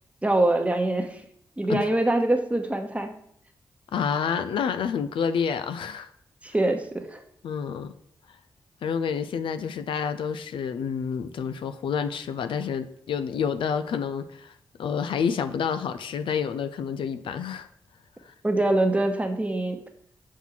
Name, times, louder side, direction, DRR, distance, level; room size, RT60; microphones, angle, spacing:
voice 1, 0.2-1.2 1.6-3.2 6.4-7.2 18.4-19.8, right 2 dB, 15° right, 5 dB, 0.9 m, -24 dB
voice 2, 3.9-6.1 7.4-7.9 8.8-17.7 18.2-18.3, left 7 dB, 80° left, 11 dB, 0.4 m, -29 dB
5.7 x 4.4 x 3.9 m, 0.68 s
cardioid pair, 50°, 9 cm